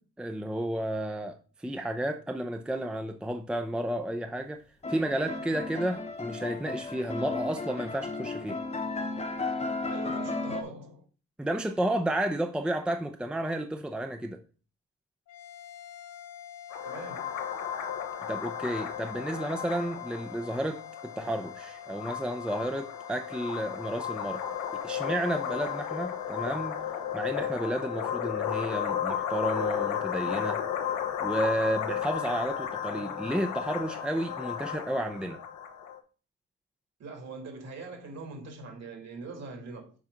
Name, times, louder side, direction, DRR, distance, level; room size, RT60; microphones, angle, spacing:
voice 1, 0.2-4.6 4.9-8.6 11.4-14.4 18.3-24.4 24.8-26.8 27.1-30.6 31.2-35.4, right 1 dB, 5° right, 0.6 m, -32 dB
sound 1, 4.8-10.6, left 3 dB, 20° left, 1.0 m, -34 dB
voice 2, 9.9-11.0 16.8-17.4 37.0-39.9, right 3 dB, 60° right, 2.9 m, -42 dB
sound 2, 15.3-29.9, left 9 dB, 55° left, 1.1 m, -47 dB
sound 3, 16.7-36.0, left 9 dB, 80° left, 1.0 m, -34 dB
7.1 x 4.7 x 3.9 m
cardioid pair, 90°, 30 cm